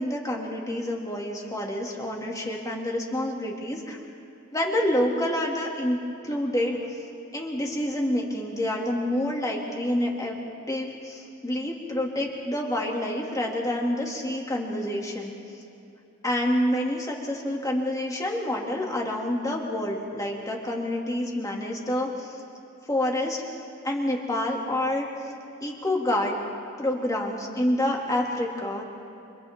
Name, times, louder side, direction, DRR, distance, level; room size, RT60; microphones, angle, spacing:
voice 1, 0.0-4.0 4.5-6.0 6.2-7.0 7.3-10.4 10.7-15.3 16.2-22.4 22.8-23.4 23.8-25.3 25.6-26.4 26.8-28.8, left 1 dB, 15° left, -1 dB, 2.6 m, -28 dB
30.0 x 27.0 x 3.8 m, 2.8 s
head